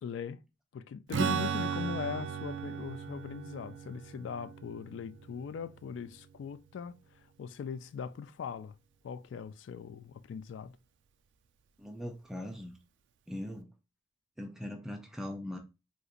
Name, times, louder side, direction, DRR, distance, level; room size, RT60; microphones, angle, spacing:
voice 1, 0.0-0.4 0.7-8.8 9.0-10.8, left 7 dB, 75° left, 0.3 m, -40 dB
Strum, 1.1-6.7, right 7 dB, 70° right, 0.4 m, -37 dB
voice 2, 11.8-12.8 13.3-13.7 14.4-15.6, left 1 dB, 5° right, 0.4 m, -40 dB
3.9 x 2.5 x 2.4 m
head